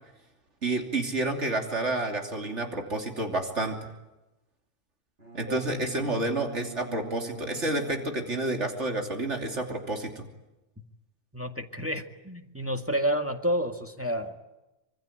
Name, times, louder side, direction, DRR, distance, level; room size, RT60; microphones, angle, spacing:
voice 1, 0.6-3.9 5.3-10.3, right 2 dB, 70° right, 3 dB, 3.3 m, -30 dB
Bowed string instrument, 5.2-9.0, right 3 dB, 55° right, 8.2 m, -44 dB
voice 2, 11.3-14.3, equal, 10° right, 4 dB, 1.9 m, -30 dB
26.5 x 24.0 x 9.0 m, 0.98 s
omnidirectional pair, 1.2 m